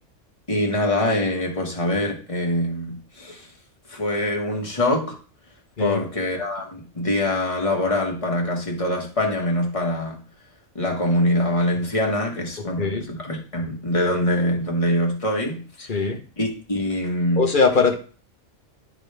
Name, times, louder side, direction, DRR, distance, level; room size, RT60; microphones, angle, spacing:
voice 1, 0.5-3.5 3.9-5.2 5.8-10.2 10.7-16.1 16.4-17.5, left 1 dB, 25° left, 1.6 m, -24 dB
voice 2, 17.4-17.9, left 4 dB, 45° left, 1.2 m, -20 dB
11.0 x 3.8 x 3.4 m
omnidirectional pair, 1.3 m